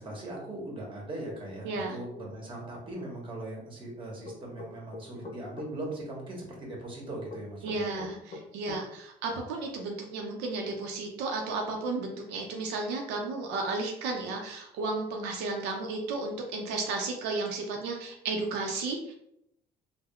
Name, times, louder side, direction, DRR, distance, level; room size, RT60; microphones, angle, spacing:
voice 1, 0.0-8.1, right 1 dB, 30° right, -2 dB, 1.1 m, -39 dB
voice 2, 1.6-2.0 7.6-19.1, right 3 dB, 90° right, 2 dB, 0.5 m, -33 dB
sound 1, 4.2-5.7 7.3-8.8, left 2 dB, 45° left, 0.7 m, -42 dB
3.5 x 2.0 x 2.2 m, 0.76 s
cardioid pair, 110°, 17 cm